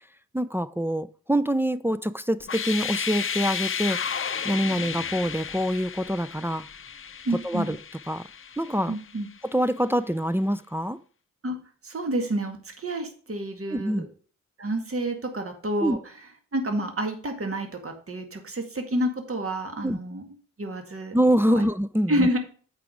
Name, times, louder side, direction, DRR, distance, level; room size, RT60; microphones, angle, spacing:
voice 1, 0.3-4.2 4.4-6.7 7.4-7.8 8.1-8.2 8.6-8.9 9.4-11.0 13.7-14.1 15.8-16.0 19.8-20.0 21.1-22.3, equal, 5° right, 0.5 m, -25 dB
sound 1, 2.4-9.3, left 7 dB, 40° left, 0.6 m, -33 dB
voice 2, 7.3-7.7 8.9-9.3 11.4-11.6 11.8-14.1 14.6-16.0 16.5-20.2 20.6-21.1 21.5-21.7 22.1-22.4, right 1 dB, 40° right, 2.0 m, -29 dB
8.3 x 4.9 x 5.1 m
cardioid pair, 60°, 34 cm